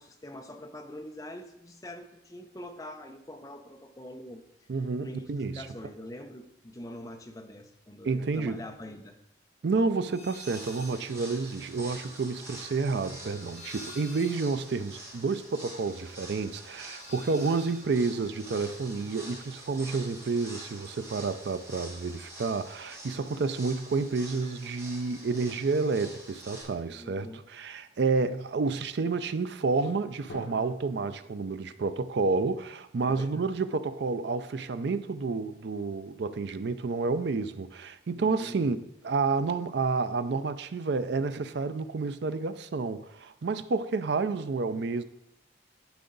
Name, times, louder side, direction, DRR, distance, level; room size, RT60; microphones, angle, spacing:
voice 1, 0.0-4.4 5.0-5.2 5.5-9.2 26.9-27.4 33.1-33.5 38.2-38.7, left 1 dB, 20° left, 0.6 m, -44 dB
voice 2, 4.7-5.7 8.0-8.6 9.6-27.3 27.5-38.8 39.0-45.0, right 4 dB, 65° right, 0.4 m, -30 dB
sound 1, 10.1-11.0 11.3-19.5 19.8-20.8, left 1 dB, 35° left, 1.6 m, -52 dB
sound 2, 10.3-26.6, right 1 dB, 15° right, 1.4 m, -46 dB
Drum, 30.3-34.0, equal, 65° left, 1.4 m, -50 dB
10.5 x 4.8 x 3.9 m
head